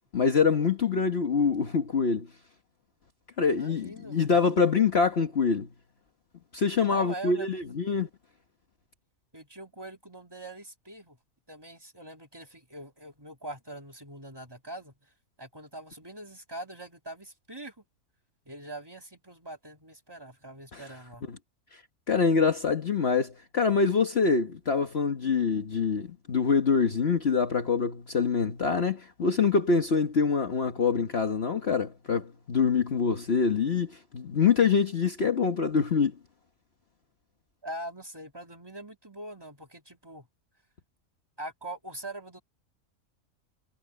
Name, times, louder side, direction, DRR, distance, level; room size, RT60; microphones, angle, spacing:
voice 1, 0.1-2.3 3.4-5.7 6.5-8.1 20.7-20.8 22.1-36.1, left 5 dB, 50° left, 1.5 m, -25 dB
voice 2, 3.5-4.4 6.8-7.6 9.3-11.2 11.5-15.1 15.4-17.8 18.4-21.3 37.6-40.3 41.4-42.4, right 1 dB, 15° right, 3.1 m, -43 dB
omnidirectional pair, 1.4 m